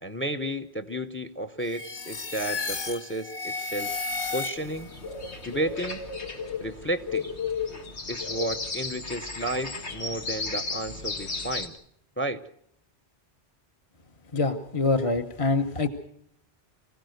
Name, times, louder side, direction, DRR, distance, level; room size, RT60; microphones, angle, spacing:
voice 1, 0.0-3.9 4.3-4.9 5.4-6.0 6.6-7.3 8.1-11.7 12.2-12.4, right 1 dB, 15° left, 11 dB, 0.6 m, -32 dB
sound 1, 1.6-5.0, left 3 dB, 60° left, 1.5 m, -33 dB
sound 2, 4.6-11.7, left 4 dB, 80° left, 2.0 m, -34 dB
voice 2, 14.3-15.9, left 3 dB, 35° left, 6 dB, 0.9 m, -25 dB
25.0 x 16.0 x 6.5 m, 0.71 s
omnidirectional pair, 1.1 m